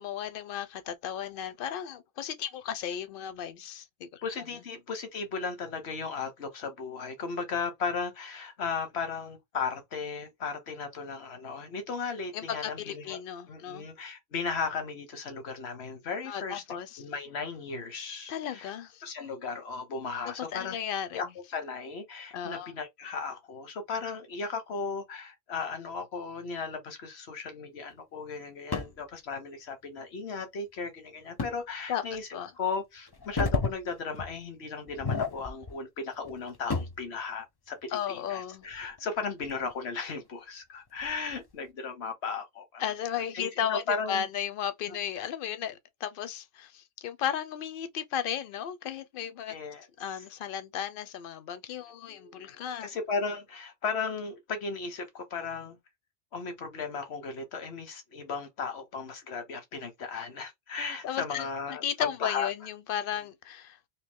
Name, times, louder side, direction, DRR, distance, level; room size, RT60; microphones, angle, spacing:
voice 1, 0.0-4.2 12.3-13.9 16.3-17.0 18.3-19.0 20.2-21.2 22.3-22.7 31.9-32.5 37.9-38.6 42.8-49.5 50.0-52.9 61.0-61.5 61.8-63.8, left 9 dB, 65° left, 0.7 m, -35 dB
voice 2, 4.2-13.2 13.5-16.6 17.0-18.7 19.0-20.8 21.1-32.3 32.6-42.8 43.3-44.3 44.9-45.0 49.5-50.2 52.1-55.8 56.3-62.5, left 5 dB, 85° left, 1.3 m, -36 dB
sound 1, 28.7-29.0 31.4-31.6 32.1-32.2 33.1-33.8 34.1-34.4 34.9-35.8 36.1-37.1 38.6-39.7 40.2-40.3 41.0-41.4, left 4 dB, 30° left, 0.5 m, -32 dB
3.1 x 2.8 x 3.5 m
omnidirectional pair, 1.1 m